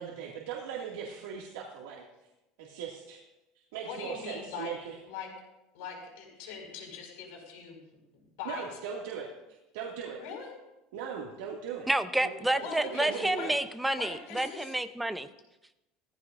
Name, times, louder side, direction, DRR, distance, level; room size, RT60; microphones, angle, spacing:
voice 1, 0.0-2.0 2.6-3.2 3.7-5.0 8.4-9.3 9.7-10.2 10.9-11.9 12.2-13.6, right 7 dB, 90° right, -3 dB, 2.1 m, -39 dB
voice 2, 3.8-4.7 5.1-5.3 5.7-7.8 8.1-8.6 10.2-10.5 12.6-13.6 13.9-14.7, left 6 dB, 80° left, 0 dB, 5.0 m, -41 dB
voice 3, 11.9-15.3, right 1 dB, 5° right, 10 dB, 0.5 m, -29 dB
18.0 x 14.5 x 2.5 m, 0.96 s
cardioid pair, 165°, 0 cm